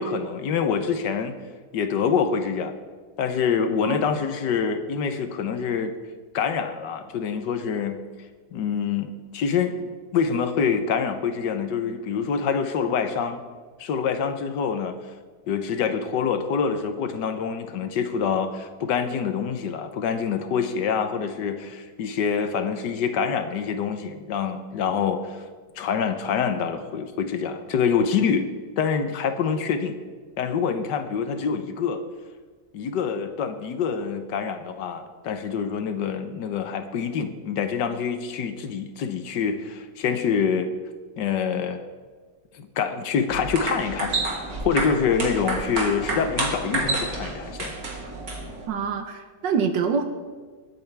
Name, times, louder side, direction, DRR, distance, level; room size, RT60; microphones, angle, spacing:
voice 1, 0.0-1.4 1.7-2.7 3.2-5.9 6.3-8.0 8.5-13.4 13.8-15.0 15.5-25.4 25.8-28.5 28.8-30.0 30.4-32.0 32.7-40.7 41.2-41.8 42.5-44.1 44.6-47.7, left 6 dB, 80° left, 8 dB, 1.5 m, -26 dB
sound 1, 43.3-48.7, right 2 dB, 55° right, 2.2 m, -29 dB
voice 2, 48.7-50.0, right 6 dB, 85° right, 7 dB, 1.7 m, -25 dB
21.0 x 8.3 x 3.4 m, 1.5 s
omnidirectional pair, 1.9 m